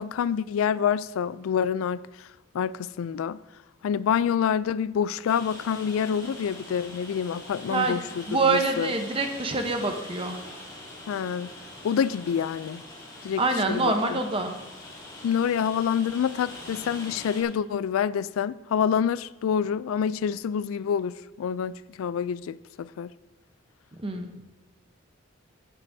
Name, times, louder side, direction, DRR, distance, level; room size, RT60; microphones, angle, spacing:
voice 1, 0.0-2.0 2.5-3.4 3.8-8.9 11.1-11.5 11.8-12.8 13.2-13.4 13.7-14.2 15.2-23.1, left 7 dB, 80° left, 0.3 m, -27 dB
Rain, 5.3-17.4, left 2 dB, 20° left, 2.3 m, -43 dB
voice 2, 8.3-10.4 13.4-14.5 24.0-24.3, right 3 dB, 25° right, 0.9 m, -25 dB
15.0 x 8.5 x 2.7 m
head